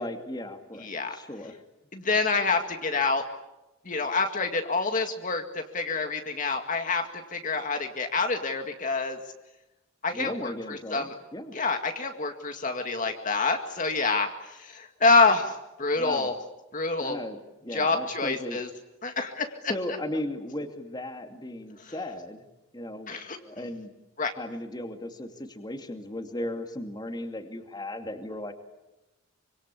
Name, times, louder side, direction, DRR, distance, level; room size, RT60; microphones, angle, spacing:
voice 1, 0.0-1.6 10.1-11.5 16.0-16.3 17.0-18.6 19.7-22.5 22.7-23.9 24.3-28.5, left 1 dB, 20° left, 6 dB, 2.5 m, -36 dB
voice 2, 0.8-1.2 1.9-3.2 3.9-7.0 7.3-9.2 10.0-11.1 11.5-16.3 16.7-17.2 17.7-18.7 19.0-19.7 21.8-21.9 23.1-23.4 24.2-24.3, left 3 dB, 40° left, 5 dB, 2.0 m, -27 dB
26.5 x 25.5 x 8.4 m, 0.97 s
head